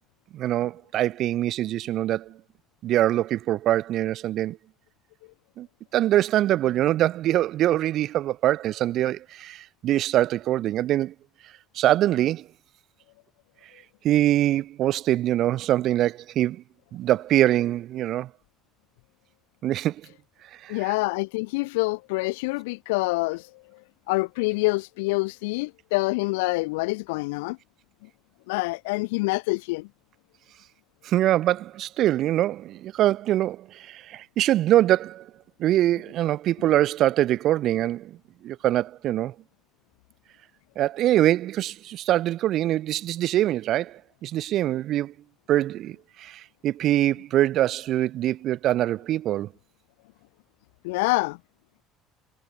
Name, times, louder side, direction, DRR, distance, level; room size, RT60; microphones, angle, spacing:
voice 1, 0.3-2.4 2.8-4.6 5.6-5.7 5.9-11.1 11.7-12.5 14.0-16.6 16.9-18.3 19.6-20.0 20.6-20.9 31.0-35.3 35.6-38.2 38.4-39.3 40.8-45.1 45.5-49.5, right 13 dB, 60° right, 3.8 m, -23 dB
voice 2, 20.7-23.5 24.1-27.6 28.5-29.9 50.8-51.4, left 25 dB, 85° left, 1.3 m, -26 dB
supercardioid pair, 85°, 0 cm